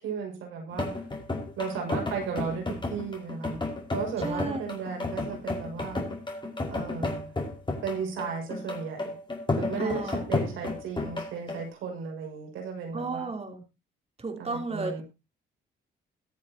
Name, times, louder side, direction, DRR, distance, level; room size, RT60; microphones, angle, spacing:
voice 1, 0.0-0.9 1.6-3.6 3.9-6.0 6.7-7.3 7.8-9.1 9.5-13.3 14.4-15.0, right 5 dB, 85° right, 2 dB, 6.3 m, -35 dB
sound 1, 0.7-11.7, left 2 dB, 25° left, 5.3 m, -32 dB
voice 2, 4.2-4.7 9.8-10.2 12.9-13.6 14.2-15.0, right 3 dB, 30° right, 3 dB, 3.4 m, -33 dB
22.0 x 7.8 x 2.9 m, 0.26 s
cardioid pair, 90°, 20 cm